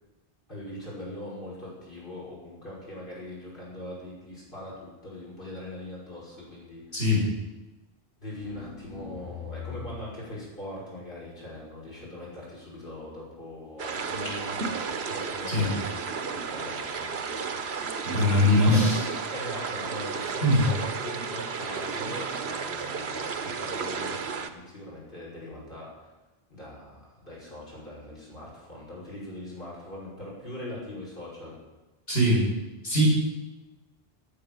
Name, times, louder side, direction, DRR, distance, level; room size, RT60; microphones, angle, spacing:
voice 1, 0.5-6.8 8.2-18.9 19.3-26.1 26.5-31.6, left 1 dB, 55° left, -6 dB, 5.7 m, -41 dB
voice 2, 6.9-7.3 15.5-15.7 18.1-19.0 20.4-20.7 32.1-32.4 32.8-33.0, left 1 dB, 75° left, -6 dB, 6.9 m, -21 dB
sound 1, 8.3-10.1, left 7 dB, 50° right, 5.3 m, -41 dB
sound 2, 13.8-24.5, right 5 dB, 90° right, 1.2 m, -33 dB
15.0 x 9.0 x 7.0 m, 1.1 s
omnidirectional pair, 1.0 m